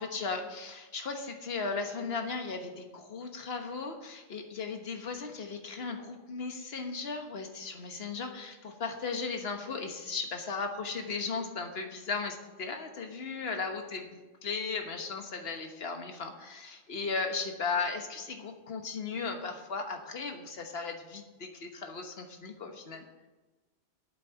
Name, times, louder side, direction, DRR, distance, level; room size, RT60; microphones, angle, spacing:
voice 1, 0.0-23.0, left 4 dB, 65° left, 5 dB, 1.5 m, -36 dB
8.4 x 7.8 x 7.4 m, 1.2 s
omnidirectional pair, 1.1 m